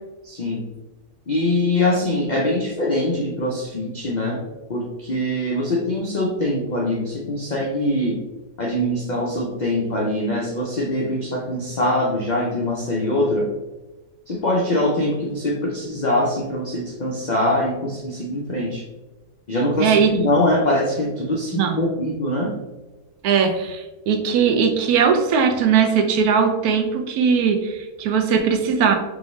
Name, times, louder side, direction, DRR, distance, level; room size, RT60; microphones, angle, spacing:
voice 1, 0.2-0.6 1.3-4.4 4.7-8.2 8.6-13.5 14.3-18.8 19.5-22.5, left 1 dB, 85° left, -2 dB, 0.4 m, -23 dB
voice 2, 19.8-20.2 21.5-21.8 23.2-28.9, right 6 dB, 85° right, 5 dB, 1.1 m, -19 dB
4.6 x 2.7 x 3.2 m, 1.1 s
omnidirectional pair, 1.5 m